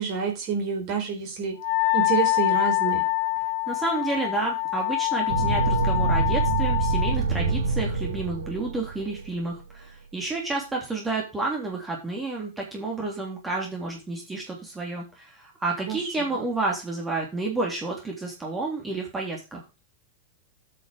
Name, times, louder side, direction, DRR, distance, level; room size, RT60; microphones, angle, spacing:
voice 1, 0.0-1.6 1.9-3.1 15.9-16.1, right 6 dB, 40° right, 3 dB, 4.0 m, -28 dB
Wind instrument woodwind instrument, 1.6-7.2, left 21 dB, 50° left, 2.1 m, -25 dB
voice 2, 3.7-19.6, right 3 dB, 10° right, -1 dB, 3.3 m, -30 dB
sound 1, 5.3-9.4, right 4 dB, 65° right, 2.3 m, -26 dB
9.1 x 6.3 x 5.1 m, 0.27 s
figure-of-eight pair, 90°, 0 cm